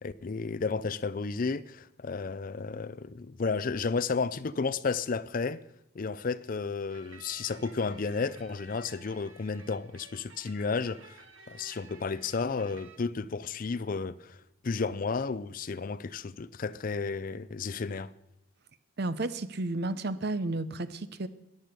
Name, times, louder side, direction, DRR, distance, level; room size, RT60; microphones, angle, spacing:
voice 1, 0.0-5.6 5.9-18.1, left 4 dB, 40° left, 0.4 m, -32 dB
sound 1, 6.9-13.0, right 3 dB, 80° right, 1.6 m, -54 dB
voice 2, 19.0-21.3, right 2 dB, 50° right, 0.8 m, -32 dB
13.5 x 10.5 x 6.8 m
head